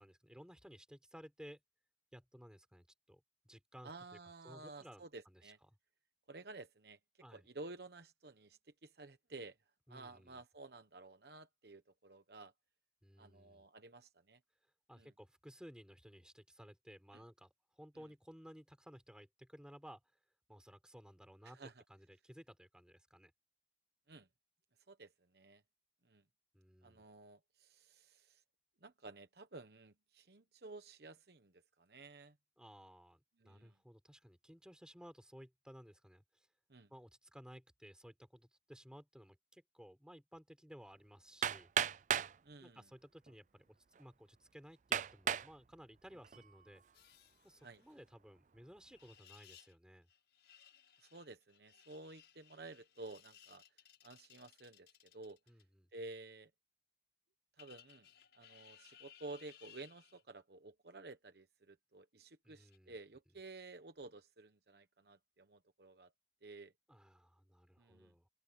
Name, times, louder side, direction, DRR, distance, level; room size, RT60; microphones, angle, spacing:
voice 1, 0.0-1.6 2.1-3.9 4.4-5.5 7.2-7.5 9.9-10.4 13.0-13.7 14.9-20.0 20.5-23.3 26.5-27.0 32.6-36.5 36.9-41.7 42.6-46.8 47.4-50.1 55.5-55.9 62.4-63.0 66.9-68.3, equal, 5° right, 4.3 m, -57 dB
voice 2, 3.8-5.6 6.3-7.0 7.3-9.6 9.9-12.5 13.2-14.4 14.9-15.1 17.1-17.2 18.0-18.1 21.4-21.8 24.1-24.3 24.9-25.6 26.0-26.2 26.8-28.4 28.8-32.4 33.4-33.7 36.7-36.9 42.4-42.8 47.6-47.8 51.0-53.6 54.0-55.4 55.9-56.5 57.6-58.1 58.3-66.1 66.4-66.7 67.8-68.1, right 2 dB, 60° right, 1.1 m, -53 dB
Hammer, 41.4-42.4 43.3-43.4 44.0-44.1 44.9-45.5 46.1-46.5, right 8 dB, 45° right, 0.4 m, -35 dB
sound 1, 46.9-48.0 48.9-49.7 50.1-55.6 57.6-60.2 62.5-62.8, left 10 dB, 70° left, 7.1 m, -63 dB
open air
head